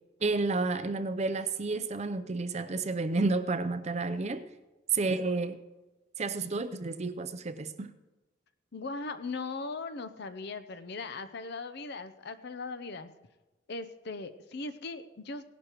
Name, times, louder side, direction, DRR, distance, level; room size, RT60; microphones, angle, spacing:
voice 1, 0.2-4.4 4.9-5.6 6.2-7.9, right 3 dB, 35° right, 0.5 m, -31 dB
voice 2, 8.7-13.1 13.7-15.4, left 3 dB, 55° left, 0.6 m, -39 dB
18.5 x 11.5 x 3.0 m
head